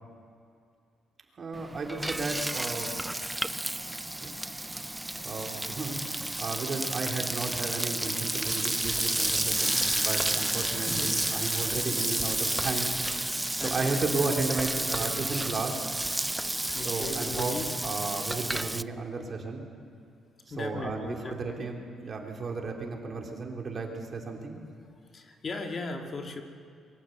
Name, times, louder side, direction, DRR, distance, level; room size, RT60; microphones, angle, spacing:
voice 1, 1.4-3.0 4.2-4.3 5.2-6.0 6.4-12.9 13.6-15.8 16.8-17.5 17.8-19.7 20.6-24.6, right 3 dB, 45° right, 1 dB, 3.3 m, -34 dB
Frying (food), 1.5-18.8, right 1 dB, 10° right, 0.4 m, -31 dB
sound 1, 9.6-14.5, left 2 dB, 25° left, 4.3 m, -47 dB
voice 2, 10.5-11.2 11.9-12.1 13.6-14.0 16.4-17.7 20.5-21.7 25.1-26.4, left 3 dB, 40° left, 4 dB, 2.0 m, -38 dB
23.0 x 15.0 x 8.0 m, 2.3 s
cardioid pair, 90°, 0 cm